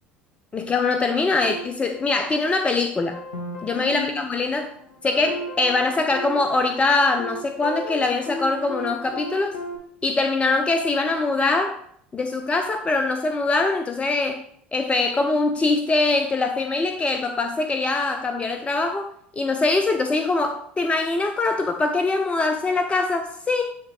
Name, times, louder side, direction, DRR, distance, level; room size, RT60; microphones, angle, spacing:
voice 1, 0.5-3.2 3.6-4.7 5.0-9.6 10.0-11.8 12.1-14.4 14.7-23.6, left 3 dB, 25° left, 6 dB, 0.6 m, -23 dB
sound 1, 1.4-2.7 3.1-9.8, left 1 dB, 80° left, 1.1 m, -35 dB
8.9 x 3.4 x 4.8 m, 0.66 s
hypercardioid pair, 65°, 5 cm